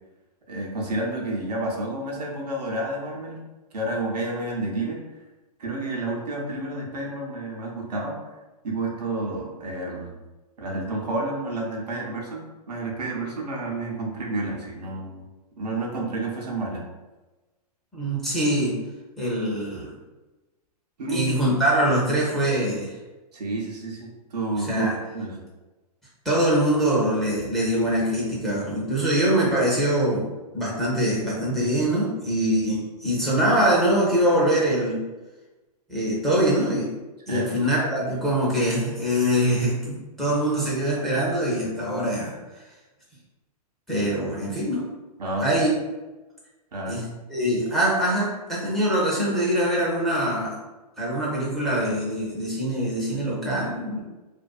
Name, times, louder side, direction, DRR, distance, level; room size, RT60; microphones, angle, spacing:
voice 1, 0.5-3.4 3.7-5.0 5.6-8.2 8.6-10.2 10.6-15.2 15.6-16.8 21.0-21.3 23.3-25.4 37.3-37.5 45.2-45.5 46.7-47.0, right 2 dB, 80° right, -2 dB, 0.7 m, -30 dB
voice 2, 17.9-18.8 19.2-19.9 21.1-23.0 24.6-24.9 26.2-30.3 30.5-35.0 35.9-36.9 37.3-42.6 43.9-44.9 45.4-45.7 46.9-50.5 51.0-54.0, right 1 dB, ahead, -7 dB, 0.7 m, -23 dB
2.5 x 2.2 x 2.3 m, 1.1 s
hypercardioid pair, 125°, 21 cm